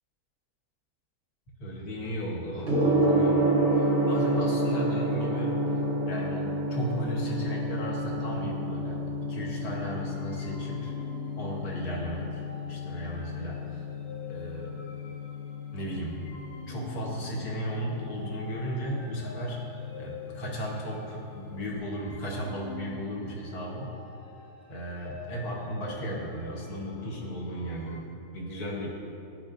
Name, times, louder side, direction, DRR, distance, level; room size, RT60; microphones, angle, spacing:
voice 1, 1.6-5.6 6.1-10.9 11.4-12.4 12.7-13.8 14.3-14.8 15.7-16.3 16.7-19.6 19.9-23.9 24.7-28.1 28.3-28.9, equal, 90° left, -3 dB, 1.7 m, -35 dB
Gong, 2.6-21.7, right 1 dB, 45° right, 1.8 m, -30 dB
sound 1, 9.8-28.0, left 3 dB, 50° left, 1.0 m, -48 dB
12.5 x 4.4 x 2.5 m, 2.7 s
omnidirectional pair, 1.6 m